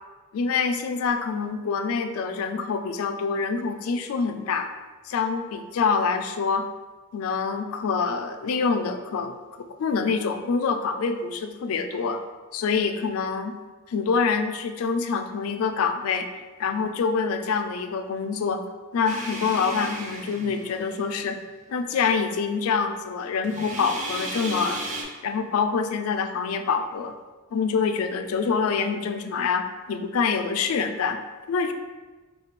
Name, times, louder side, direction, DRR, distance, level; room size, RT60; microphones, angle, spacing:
voice 1, 0.3-4.7 5.0-6.7 7.1-12.2 12.5-13.6 13.9-16.3 16.6-18.6 18.9-21.4 21.7-24.8 25.2-27.2 27.5-31.2 31.5-31.7, left 5 dB, 80° left, 7 dB, 0.3 m, -26 dB
sound 1, 19.1-21.1 23.4-25.0, right 2 dB, 35° right, 0.4 m, -34 dB
3.2 x 2.2 x 4.1 m, 1.3 s
head